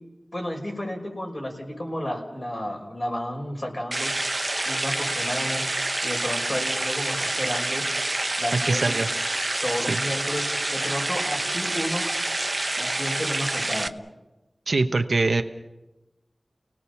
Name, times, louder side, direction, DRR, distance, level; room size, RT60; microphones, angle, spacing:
voice 1, 0.3-4.1 4.6-5.7 6.0-7.8 8.4-8.8 9.6-12.1 12.8-13.9, equal, 50° left, 0 dB, 5.7 m, -31 dB
sound 1, 3.9-13.9, right 2 dB, 45° right, 0.9 m, -27 dB
voice 2, 8.6-9.1 9.9-10.0 14.7-15.4, right 3 dB, 90° right, 6 dB, 1.0 m, -23 dB
29.5 x 18.0 x 7.1 m, 1.0 s
wide cardioid pair, 40°, 0 cm